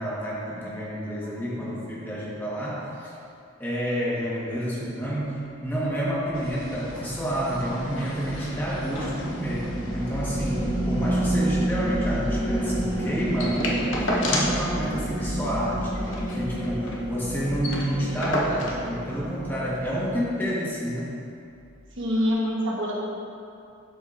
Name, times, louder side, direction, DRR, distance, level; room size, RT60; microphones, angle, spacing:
voice 1, 0.0-3.1 3.6-15.9 16.3-21.1, equal, 10° left, -7 dB, 1.3 m, -29 dB
sound 1, 6.1-20.4, right 1 dB, 25° left, 1.5 m, -30 dB
sound 2, 6.3-13.4, equal, 80° left, 1.3 m, -42 dB
sound 3, 13.4-14.7 15.0-15.1 15.4-15.6 16.0-17.0 17.3-17.4 17.6-18.9 19.8-19.9, left 1 dB, 60° left, 0.9 m, -29 dB
voice 2, 22.0-22.9, equal, 60° right, -4 dB, 1.2 m, -25 dB
11.0 x 5.0 x 2.5 m, 2.5 s
head